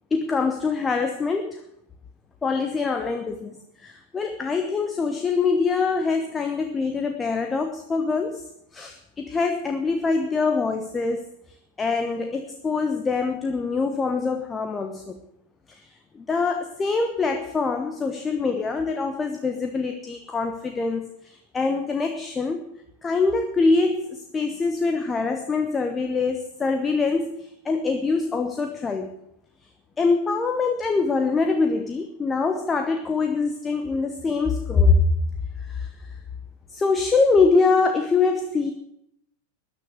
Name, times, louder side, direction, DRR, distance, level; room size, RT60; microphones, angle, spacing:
voice 1, 0.1-1.6 2.4-8.4 8.7-11.2 11.8-15.2 15.7-22.7 23.0-29.2 30.0-35.0 35.6-35.9 36.7-38.7, left 4 dB, 15° left, 6 dB, 1.2 m, -24 dB
13.5 x 9.9 x 7.9 m, 0.77 s
figure-of-eight pair, 90°, 0 cm